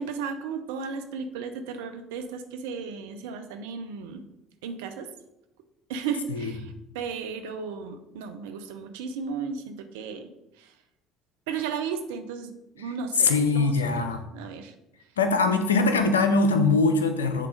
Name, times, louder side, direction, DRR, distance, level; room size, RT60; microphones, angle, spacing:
voice 1, 0.0-4.2 4.6-5.1 5.9-10.3 10.6-10.7 11.5-14.7, right 6 dB, 75° right, 7 dB, 0.7 m, -35 dB
voice 2, 13.2-14.2 15.2-17.5, left 3 dB, 85° left, 7 dB, 0.6 m, -22 dB
7.6 x 3.7 x 4.9 m, 0.90 s
hypercardioid pair, 55°, 0 cm